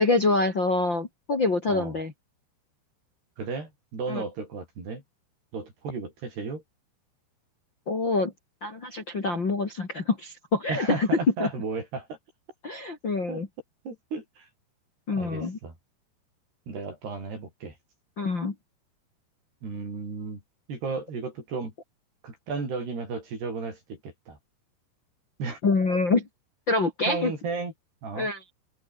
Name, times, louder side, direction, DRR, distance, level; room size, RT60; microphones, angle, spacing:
voice 1, 0.0-2.1 4.1-4.2 7.9-8.3 8.6-11.1 11.4-11.5 12.6-13.5 15.1-15.6 18.2-18.5 25.6-26.3 26.7-27.3 28.2-28.4, left 3 dB, 30° left, 2.9 m, -26 dB
voice 2, 3.4-5.0 5.5-6.6 10.7-12.2 13.3-13.4 13.9-14.5 15.1-15.7 16.7-17.7 19.6-20.4 20.7-21.7 22.2-24.4 25.4-25.6 27.1-27.7 28.0-28.3, right 4 dB, 60° right, 9.7 m, -34 dB
open air
omnidirectional pair, 5.2 m